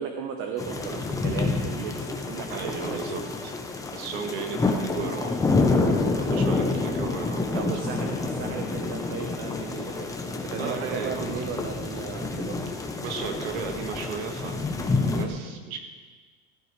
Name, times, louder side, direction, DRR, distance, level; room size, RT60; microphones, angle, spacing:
voice 1, 0.0-3.0 6.6-6.7 7.5-12.6, right 6 dB, 45° right, 3 dB, 1.1 m, -36 dB
sound 1, 0.6-15.2, left 3 dB, 10° left, 1.0 m, -28 dB
voice 2, 2.5-3.5 3.9-5.4 6.1-7.7 10.6-11.4 13.0-15.8, right 6 dB, 80° right, 4 dB, 1.9 m, -35 dB
15.5 x 13.0 x 3.4 m, 1.4 s
supercardioid pair, 125°, 31 cm